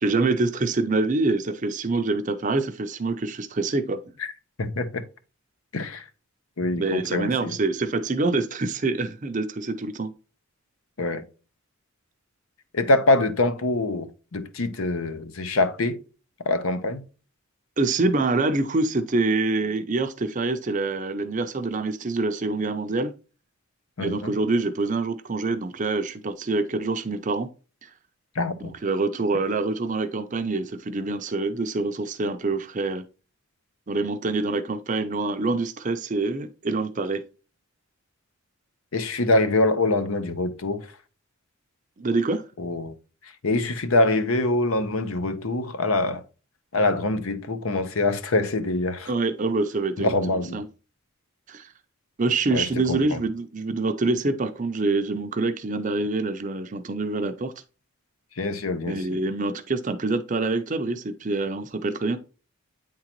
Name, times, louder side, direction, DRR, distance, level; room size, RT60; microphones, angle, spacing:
voice 1, 0.0-4.0 6.8-10.1 17.8-23.1 24.0-27.5 27.8-27.9 28.6-33.0 33.9-37.2 42.0-42.4 49.1-50.7 51.5-51.7 52.2-57.5 58.8-62.2, right 3 dB, 35° right, 0.5 m, -26 dB
voice 2, 4.6-5.0 5.7-6.0 6.6-7.6 11.0-11.2 12.7-16.0 16.5-17.0 24.0-24.3 28.4-28.7 38.9-40.8 42.6-42.9 43.4-46.2 46.7-49.1 50.0-50.6 52.5-53.2 58.4-59.2, left 2 dB, 75° left, 0.8 m, -24 dB
8.8 x 3.8 x 2.9 m
head